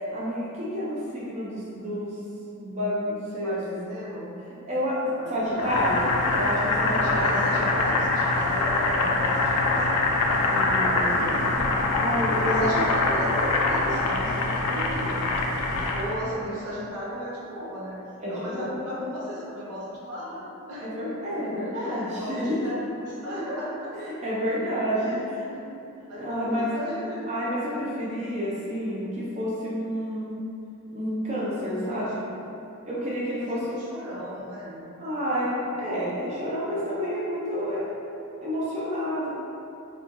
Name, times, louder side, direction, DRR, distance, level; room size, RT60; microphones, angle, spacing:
voice 1, 0.0-2.2 2.5-3.6 4.6-5.0 5.3-6.0 6.3-7.5 10.4-11.5 12.0-12.7 18.2-18.7 20.8-22.4 23.2-23.5 24.0-25.4 26.2-26.7 27.3-30.3 30.9-32.1 32.9-33.8 35.0-37.8 38.4-39.3, equal, 30° right, -7 dB, 0.4 m, -29 dB
voice 2, 3.4-4.3 5.2-5.9 6.9-10.1 11.2-11.5 12.4-15.3 15.7-18.0 18.3-20.9 21.5-24.1 24.4-24.5 25.0-25.8 26.1-27.3 31.7-32.3 33.4-34.9, equal, 90° right, -6 dB, 0.7 m, -35 dB
Boiling, 5.6-16.2, left 2 dB, 90° left, 0.3 m, -24 dB
3.0 x 2.2 x 2.5 m, 2.8 s
head